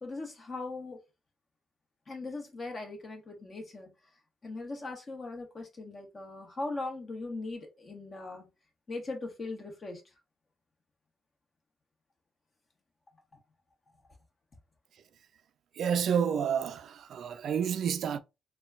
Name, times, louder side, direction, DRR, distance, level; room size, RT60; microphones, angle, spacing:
voice 1, 0.0-1.0 2.1-3.9 4.4-8.5 8.9-10.0, left 2 dB, 35° left, 1.3 m, -39 dB
voice 2, 15.8-18.2, right 7 dB, 65° right, 0.3 m, -29 dB
4.1 x 2.3 x 2.4 m
cardioid pair, 90°, 0 cm